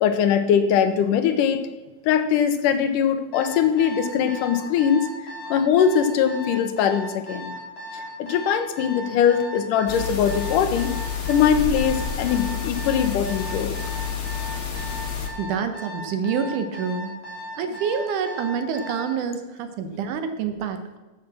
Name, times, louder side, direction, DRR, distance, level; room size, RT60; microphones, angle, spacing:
voice 1, 0.0-1.6 2.0-5.1 5.5-7.5 7.9-10.9 11.3-13.7, left 8 dB, 80° left, 9 dB, 2.4 m, -21 dB
Alarm, 3.3-19.1, equal, 60° left, 5.0 m, -37 dB
sound 1, 9.9-15.3, left 7 dB, 40° left, 1.0 m, -29 dB
voice 2, 15.4-17.1 17.6-21.0, right 6 dB, 75° right, 8 dB, 2.4 m, -27 dB
13.0 x 6.3 x 6.0 m, 1.2 s
omnidirectional pair, 3.8 m